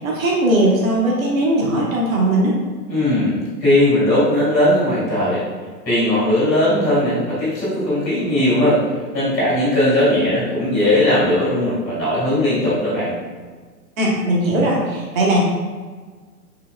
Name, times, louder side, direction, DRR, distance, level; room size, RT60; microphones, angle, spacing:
voice 1, 0.0-2.6 14.0-15.4, right 1 dB, 55° right, -3 dB, 1.1 m, -18 dB
voice 2, 2.9-5.4 5.8-8.8 9.1-13.1, left 1 dB, ahead, -35 dB, 0.4 m, -18 dB
3.9 x 3.0 x 2.3 m, 1.5 s
hypercardioid pair, 140°, 49 cm